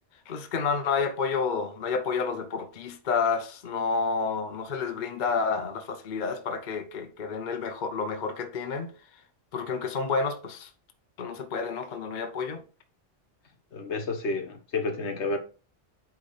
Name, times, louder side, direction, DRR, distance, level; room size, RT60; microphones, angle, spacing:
voice 1, 0.3-8.9 9.5-10.7 11.2-12.6, left 5 dB, 45° left, 0.8 m, -30 dB
voice 2, 13.7-15.4, left 3 dB, 65° left, 1.4 m, -30 dB
8.5 x 3.6 x 3.9 m
omnidirectional pair, 1.2 m